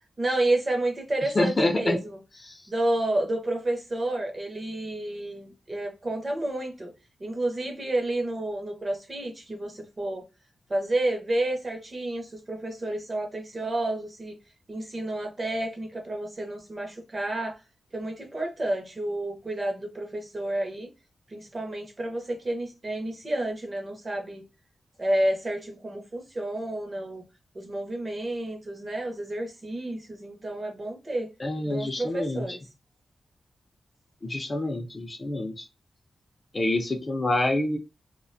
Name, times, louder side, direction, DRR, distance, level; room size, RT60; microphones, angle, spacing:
voice 1, 0.2-2.2 2.7-6.9 7.2-10.2 10.7-14.4 14.7-17.6 17.9-20.9 21.3-24.4 25.0-27.2 27.5-31.3 31.6-32.6, right 1 dB, 25° right, 0.6 m, -30 dB
voice 2, 1.4-2.0 2.4-2.6 31.4-32.6 34.2-35.7 36.5-37.8, left 2 dB, 25° left, 0.4 m, -27 dB
2.4 x 2.2 x 2.4 m
wide cardioid pair, 175°, 0 cm